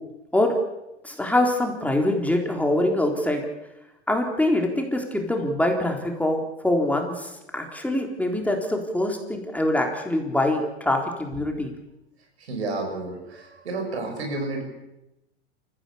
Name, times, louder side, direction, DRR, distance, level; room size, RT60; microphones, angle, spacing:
voice 1, 1.0-3.5 4.1-11.7, left 1 dB, 5° left, 2 dB, 3.7 m, -24 dB
voice 2, 12.4-14.6, right 2 dB, 80° right, 2 dB, 6.7 m, -31 dB
28.0 x 15.0 x 7.0 m, 0.92 s
hypercardioid pair, 90°, 32 cm